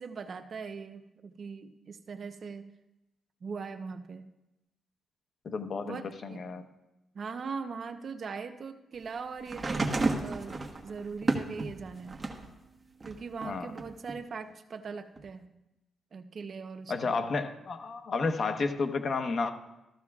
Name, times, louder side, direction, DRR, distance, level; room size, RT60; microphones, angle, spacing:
voice 1, 0.0-2.7 3.4-4.2 5.8-6.4 7.1-12.2 13.0-15.5 16.1-17.1, right 5 dB, 50° right, 7 dB, 0.8 m, -40 dB
voice 2, 5.4-6.7 13.4-13.7 16.9-19.5, left 4 dB, 50° left, 6 dB, 1.1 m, -31 dB
sound 1, 9.5-12.5 13.0-14.1 15.2-15.3, right 3 dB, 30° right, 1.3 m, -32 dB
14.5 x 14.0 x 2.4 m, 0.95 s
cardioid pair, 95°, 0 cm